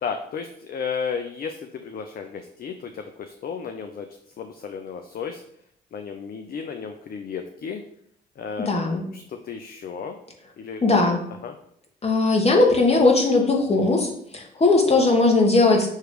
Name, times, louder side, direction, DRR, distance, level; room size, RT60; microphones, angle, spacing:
voice 1, 0.0-5.4 5.9-7.8 8.4-8.7 9.1-10.2 10.6-10.8 11.4-11.5 14.8-15.2, left 6 dB, 45° left, 6 dB, 0.6 m, -33 dB
voice 2, 8.7-9.0 10.8-11.2 12.0-14.1 14.3-15.9, left 3 dB, 30° left, 1 dB, 1.7 m, -18 dB
6.4 x 3.1 x 5.0 m, 0.71 s
hypercardioid pair, 50°, 21 cm